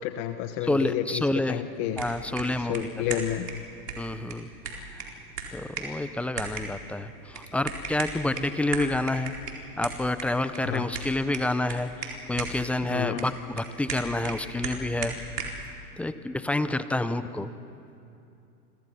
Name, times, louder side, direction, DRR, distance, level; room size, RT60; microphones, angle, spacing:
voice 1, 0.0-2.0 2.5-3.5 10.6-10.9 12.9-13.3, left 11 dB, 40° left, 9 dB, 1.1 m, -31 dB
voice 2, 0.6-1.6 2.0-3.2 4.0-5.1 5.5-9.3 9.8-15.1 16.0-17.5, left 2 dB, 5° left, 12 dB, 0.5 m, -29 dB
sound 1, 1.7-15.6, right 4 dB, 80° right, 4.4 m, -38 dB
29.5 x 25.0 x 5.6 m, 2.7 s
hypercardioid pair, 110°, 46 cm